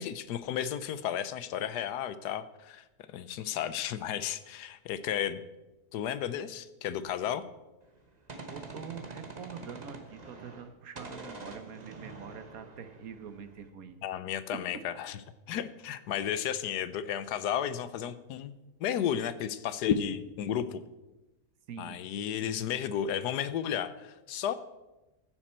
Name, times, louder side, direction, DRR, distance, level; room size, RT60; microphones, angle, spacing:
voice 1, 0.0-2.8 3.1-5.4 5.9-7.4 14.0-15.2 15.5-18.5 18.8-20.8 21.8-24.5, left 9 dB, 80° left, 14 dB, 1.3 m, -33 dB
Gunshot gunfire, 7.8-10.7 11.0-13.7, right 3 dB, 30° right, 1.1 m, -46 dB
voice 2, 8.5-14.0 21.7-22.0, right 7 dB, 60° right, 10 dB, 1.3 m, -45 dB
15.0 x 9.1 x 4.4 m, 1.1 s
omnidirectional pair, 1.7 m